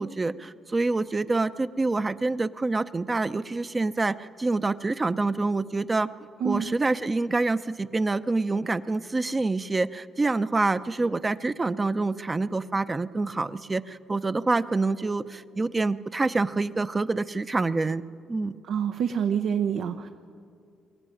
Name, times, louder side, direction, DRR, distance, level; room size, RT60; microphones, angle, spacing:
voice 1, 0.0-6.1 6.4-18.0 18.3-18.6, right 3 dB, 25° right, 12 dB, 0.7 m, -26 dB
voice 2, 18.6-20.1, right 8 dB, 75° right, 6 dB, 0.8 m, -27 dB
22.5 x 15.5 x 9.9 m, 2.4 s
cardioid pair, 90°, 0 cm